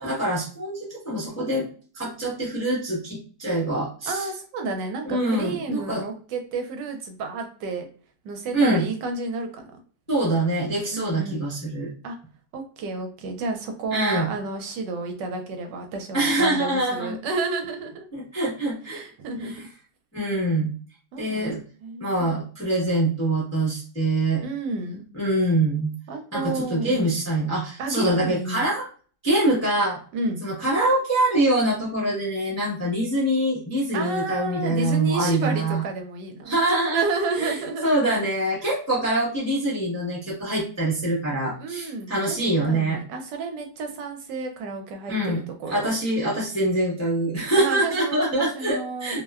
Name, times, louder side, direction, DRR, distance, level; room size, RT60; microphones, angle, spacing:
voice 1, 0.0-1.7 1.9-4.3 5.1-6.0 8.5-8.8 10.1-11.9 13.9-14.3 16.1-17.2 18.1-19.0 19.4-19.6 20.1-20.7 21.2-21.6 22.0-24.4 25.1-25.9 26.3-28.8 29.2-30.0 30.4-35.8 36.5-37.0 37.3-37.5 37.8-43.0 45.1-45.4 45.7-49.2, right 1 dB, 20° left, -7 dB, 0.4 m, -24 dB
voice 2, 4.0-7.9 8.2-9.8 10.9-11.4 12.0-12.2 12.5-18.1 18.9-19.6 21.1-21.5 21.8-22.3 24.4-25.0 26.1-27.0 27.8-28.6 30.1-30.4 33.9-36.5 36.9-37.9 41.6-45.9 47.6-49.1, right 3 dB, 75° right, 4 dB, 1.2 m, -31 dB
3.0 x 2.1 x 2.3 m, 0.40 s
omnidirectional pair, 2.0 m